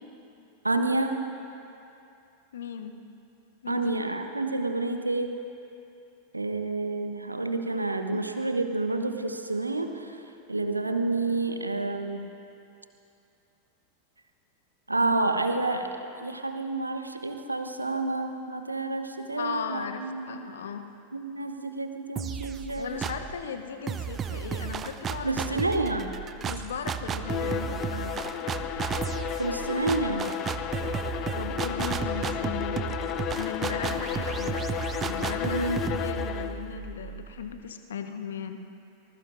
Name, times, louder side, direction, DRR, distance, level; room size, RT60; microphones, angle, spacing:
voice 1, 0.6-1.2 3.7-5.4 6.3-10.2 10.5-12.3 14.9-15.9 16.2-20.4 21.1-22.9 25.2-26.1 29.4-30.3 35.4-35.8, right 2 dB, 85° right, 6 dB, 1.0 m, -29 dB
voice 2, 2.5-3.0 3.6-4.0 8.1-8.2 19.4-20.0 20.3-20.9 22.8-26.0 26.4-28.3 31.3-33.0 33.3-34.6 35.0-38.6, left 7 dB, 65° left, 7 dB, 0.9 m, -37 dB
sound 1, 22.2-23.4 23.9-37.6, right 7 dB, 25° right, 0.6 m, -34 dB
Bowed string instrument, 27.2-36.7, left 10 dB, 35° left, 0.7 m, -33 dB
24.5 x 20.5 x 2.6 m, 2.7 s
figure-of-eight pair, 90°, 0 cm